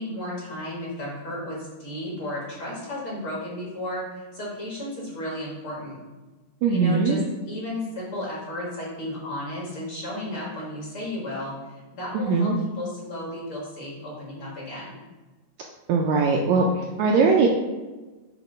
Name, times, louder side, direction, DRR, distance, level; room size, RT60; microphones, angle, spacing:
voice 1, 0.0-6.0 6.7-12.5 12.8-15.0, left 1 dB, 50° left, -5 dB, 2.0 m, -34 dB
voice 2, 6.6-7.2 12.1-12.6 15.9-17.5, right 4 dB, 80° right, 0 dB, 1.7 m, -20 dB
7.9 x 2.9 x 5.3 m, 1.2 s
omnidirectional pair, 3.8 m